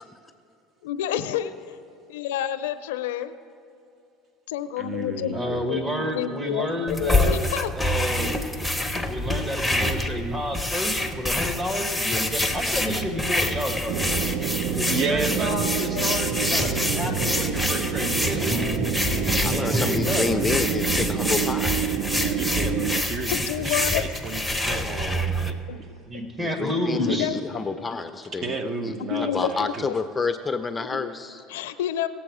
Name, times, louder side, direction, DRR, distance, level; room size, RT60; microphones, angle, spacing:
voice 1, 0.8-1.8 2.1-3.4 4.5-7.7 15.9-16.2 23.3-24.0 25.7-26.3 26.7-27.4 29.1-29.7 30.8-31.1 31.5-32.1, left 10 dB, 85° left, 12 dB, 0.5 m, -29 dB
voice 2, 4.8-5.7 12.5-13.4 14.9-15.6 19.3-19.9 22.1-25.9 27.1-27.2 28.4-29.9, right 4 dB, 40° right, 7 dB, 1.0 m, -33 dB
voice 3, 5.3-7.4 7.7-8.4 9.1-14.0 14.7-18.7 19.6-20.3 26.1-27.3, equal, 25° right, 4 dB, 1.7 m, -30 dB
sound 1, 6.9-25.5, left 1 dB, ahead, 0.9 m, -26 dB
sound 2, 13.9-23.0, right 9 dB, 65° right, 0.4 m, -28 dB
voice 4, 19.4-21.8 26.4-28.6 28.8-28.9 29.2-31.4, left 4 dB, 20° left, 9 dB, 0.5 m, -29 dB
18.0 x 7.2 x 4.9 m, 2.7 s
supercardioid pair, 100°, 0 cm